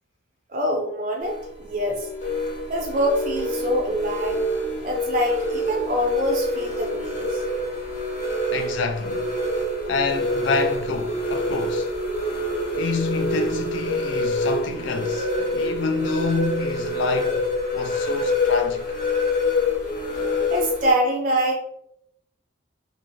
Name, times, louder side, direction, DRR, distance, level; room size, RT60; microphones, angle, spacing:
voice 1, 0.5-2.1 2.7-4.5 4.8-7.4 20.5-21.6, equal, 40° right, 0.4 m, -25 dB
sound 1, 1.2-20.9, left 1 dB, 45° left, 0.9 m, -26 dB
voice 2, 8.5-9.3 9.9-11.9 12.8-17.4 17.7-18.8, left 4 dB, 70° left, 0.4 m, -27 dB
2.5 x 2.4 x 3.1 m
head